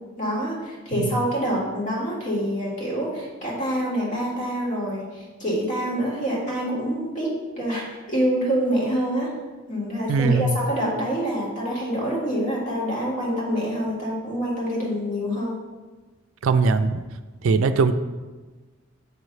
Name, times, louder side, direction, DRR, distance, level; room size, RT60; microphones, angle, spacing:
voice 1, 0.2-9.3 9.7-15.6, equal, 40° left, -4 dB, 1.8 m, -26 dB
voice 2, 10.1-10.6 16.4-17.0 17.4-17.9, right 4 dB, 85° right, 10 dB, 0.4 m, -20 dB
6.8 x 3.2 x 5.3 m, 1.3 s
head